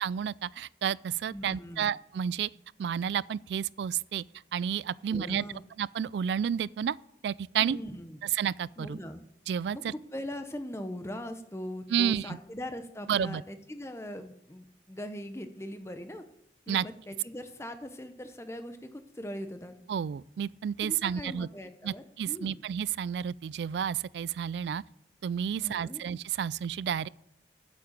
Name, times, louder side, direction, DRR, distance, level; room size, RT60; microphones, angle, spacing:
voice 1, 0.0-2.5 2.8-4.2 4.5-5.5 5.8-7.0 7.2-7.8 8.2-9.0 9.5-9.9 11.9-12.4 13.1-13.4 16.7-16.9 19.9-21.5 21.8-24.8 25.2-27.1, right 8 dB, 75° right, 0.3 m, -31 dB
voice 2, 1.3-1.9 5.1-5.6 7.6-8.2 8.8-9.2 9.7-16.2 16.7-19.7 20.8-22.6 25.5-26.0, equal, 15° left, 0.9 m, -40 dB
8.6 x 7.7 x 7.4 m
head